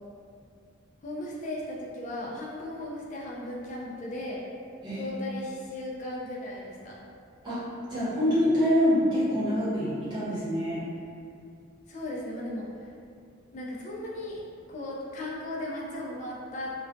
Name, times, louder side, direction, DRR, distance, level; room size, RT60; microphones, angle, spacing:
voice 1, 1.0-4.4 5.0-6.9 11.9-12.9 13.5-14.4 14.7-16.7, left 1 dB, 40° left, -4 dB, 0.4 m, -36 dB
voice 2, 7.9-10.8, equal, 25° right, -12 dB, 0.9 m, -25 dB
2.3 x 2.2 x 2.5 m, 2.4 s
head